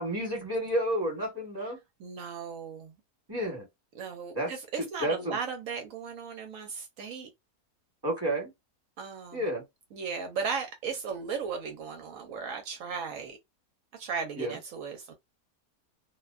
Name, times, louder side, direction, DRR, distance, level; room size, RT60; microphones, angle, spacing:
voice 1, 0.0-1.8 3.3-3.6 4.3-4.5 5.0-5.4 8.0-8.5 9.3-9.6 14.4-14.6, right 1 dB, 15° right, 1.2 m, -30 dB
voice 2, 2.0-2.9 3.9-7.3 9.0-9.5 9.9-13.4 13.9-15.1, right 5 dB, 70° right, 0.9 m, -36 dB
2.5 x 2.1 x 2.3 m
omnidirectional pair, 1.6 m